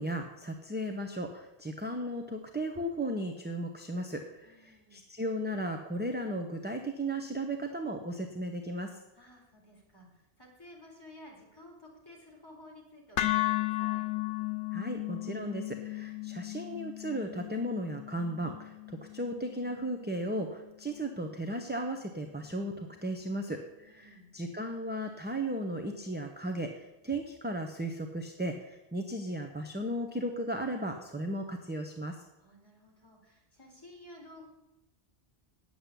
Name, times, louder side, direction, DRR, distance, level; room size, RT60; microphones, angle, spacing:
voice 1, 0.0-9.0 14.7-32.2, right 1 dB, 10° right, 4 dB, 0.8 m, -35 dB
voice 2, 4.4-5.0 9.1-14.0 23.8-24.3 32.4-34.5, left 1 dB, 20° left, -3 dB, 3.8 m, -54 dB
sound 1, 13.2-21.3, left 17 dB, 90° left, 1.0 m, -35 dB
9.5 x 8.0 x 8.3 m, 0.96 s
omnidirectional pair, 1.1 m